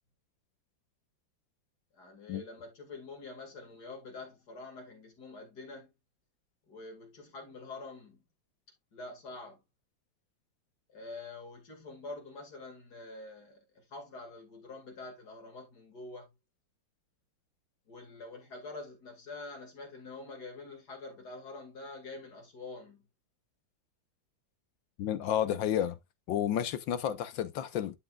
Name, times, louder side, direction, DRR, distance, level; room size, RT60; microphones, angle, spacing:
voice 1, 1.9-5.9 6.7-8.2 8.9-9.6 10.9-16.3 17.9-23.1, left 3 dB, 60° left, 2.7 m, -46 dB
voice 2, 25.0-26.0 26.3-28.0, left 10 dB, 90° left, 1.7 m, -31 dB
11.5 x 5.2 x 2.4 m
omnidirectional pair, 2.0 m